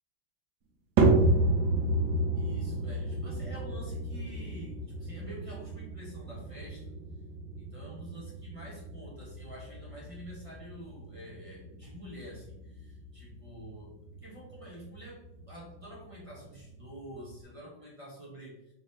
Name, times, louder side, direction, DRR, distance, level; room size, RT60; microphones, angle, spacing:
sound 1, 1.0-17.4, right 2 dB, 70° right, 1.2 m, -32 dB
voice 1, 2.3-6.9 7.6-13.9 14.2-18.7, equal, 40° right, -5 dB, 0.4 m, -47 dB
3.8 x 3.5 x 2.7 m, 0.86 s
omnidirectional pair, 2.1 m